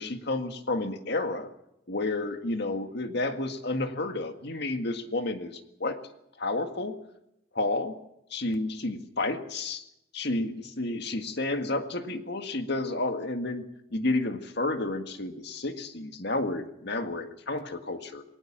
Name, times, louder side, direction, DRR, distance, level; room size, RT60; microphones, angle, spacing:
voice 1, 0.0-1.5 1.9-6.0 6.4-6.9 7.5-7.9 8.3-9.8 10.1-13.6 13.9-18.2, left 2 dB, 60° left, 7 dB, 1.9 m, -31 dB
21.5 x 19.0 x 7.5 m, 0.81 s
head